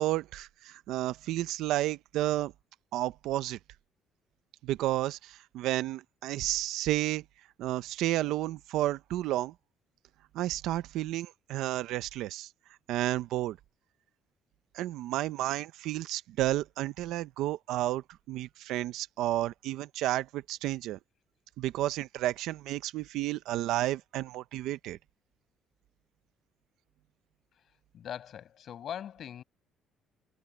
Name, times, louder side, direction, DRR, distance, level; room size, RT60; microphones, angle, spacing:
voice 1, 0.0-2.5 2.9-3.6 4.6-7.2 7.6-9.5 10.3-12.5 12.9-13.6 14.7-21.0 21.6-25.0, right 15 dB, 80° right, 0.8 m, -31 dB
voice 2, 27.9-29.4, left 9 dB, 50° left, 6.3 m, -41 dB
cardioid pair, 130°, 0 cm